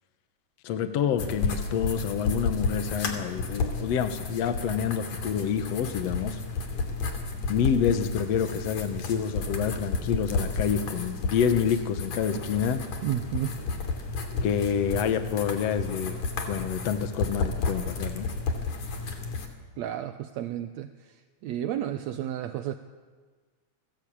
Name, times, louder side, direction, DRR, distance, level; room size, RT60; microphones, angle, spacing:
voice 1, 0.6-6.4 7.5-12.9 14.4-16.2 16.5-18.3, left 8 dB, 65° left, 8 dB, 2.3 m, -28 dB
sound 1, 1.2-19.5, left 4 dB, 85° left, 4.2 m, -32 dB
voice 2, 13.0-13.5 19.8-20.9 21.4-22.8, right 11 dB, 75° right, 8 dB, 2.1 m, -31 dB
29.5 x 20.0 x 8.7 m, 1.5 s
omnidirectional pair, 3.3 m